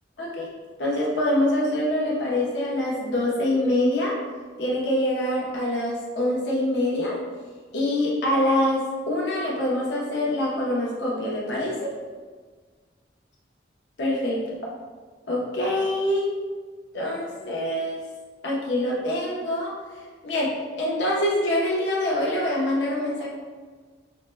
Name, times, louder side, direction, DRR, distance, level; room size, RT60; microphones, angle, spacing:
voice 1, 0.2-0.5 0.8-4.1 4.6-7.1 7.7-11.9 14.0-14.4 15.3-16.3 16.9-18.0 18.4-19.7 20.2-23.3, left 1 dB, 80° left, -4 dB, 0.9 m, -25 dB
5.5 x 2.2 x 2.2 m, 1.5 s
head